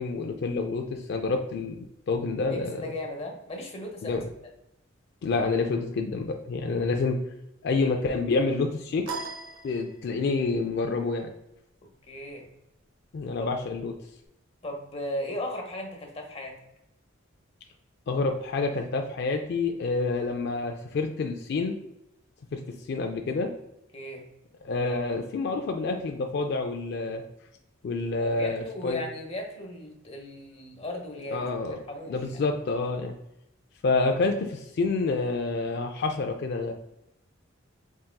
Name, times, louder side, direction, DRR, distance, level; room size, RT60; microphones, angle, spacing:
voice 1, 0.0-1.8 2.1-2.9 4.0-4.2 5.2-7.2 7.6-9.1 9.6-11.3 13.1-13.9 18.1-21.8 22.5-22.6 22.9-23.5 24.6-27.2 27.8-29.0 31.3-31.8 32.1-33.1 33.8-36.7, left 3 dB, 55° left, 4 dB, 0.4 m, -28 dB
voice 2, 2.5-4.2 12.1-12.5 13.4-13.5 14.6-16.6 23.9-24.2 28.2-31.5 31.9-32.4, left 1 dB, 30° left, 1 dB, 0.9 m, -36 dB
sound 1, 9.1-10.4, right 4 dB, 85° right, 0.7 m, -38 dB
4.0 x 3.7 x 2.2 m, 0.85 s
head